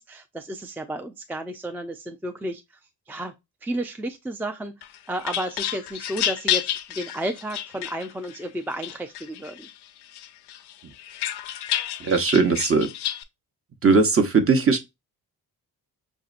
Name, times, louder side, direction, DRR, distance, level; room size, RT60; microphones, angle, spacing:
voice 1, 0.0-2.6 3.1-3.3 3.6-9.7, right 1 dB, 5° right, 0.4 m, -32 dB
sound 1, 4.8-8.4 8.8-9.7 10.1-13.2, left 12 dB, 85° left, 0.5 m, -30 dB
voice 2, 12.0-12.9 13.8-14.8, right 4 dB, 35° right, 0.9 m, -19 dB
5.2 x 2.7 x 2.4 m
cardioid pair, 70°, 39 cm